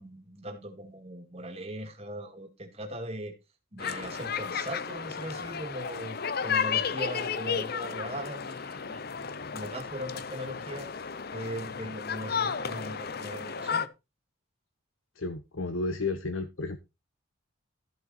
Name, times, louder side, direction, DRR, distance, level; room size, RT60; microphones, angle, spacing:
voice 1, 0.0-3.3 3.7-10.9 11.3-13.9, equal, 30° right, 2.4 m, -39 dB
sound 1, 3.8-13.9, left 6 dB, 50° left, 0.7 m, -33 dB
voice 2, 15.2-16.8, left 3 dB, 75° left, 1.1 m, -32 dB
13.5 x 6.8 x 4.3 m
head